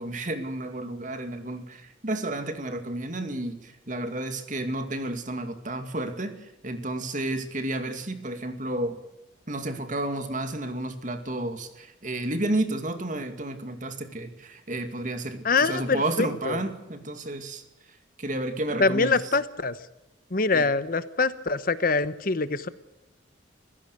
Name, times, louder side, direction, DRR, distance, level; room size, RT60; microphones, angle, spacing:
voice 1, 0.0-9.0 9.5-17.6 18.2-19.2 20.5-20.7, right 1 dB, 40° right, 7 dB, 2.4 m, -31 dB
voice 2, 15.4-16.6 18.8-19.8 20.3-22.7, left 4 dB, 45° left, 14 dB, 0.9 m, -24 dB
26.5 x 16.0 x 6.7 m, 0.94 s
head